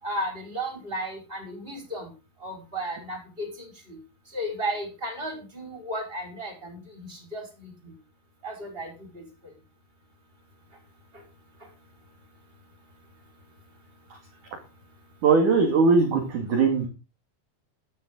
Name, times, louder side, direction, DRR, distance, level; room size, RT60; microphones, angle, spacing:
voice 1, 0.0-2.1 2.4-4.0 4.3-7.9 8.4-9.5 11.1-11.2 11.6-11.7, right 1 dB, 10° right, 3 dB, 4.9 m, -34 dB
voice 2, 15.2-16.9, right 4 dB, 50° right, 3 dB, 3.2 m, -20 dB
14.0 x 12.0 x 3.9 m, 0.31 s
omnidirectional pair, 5.8 m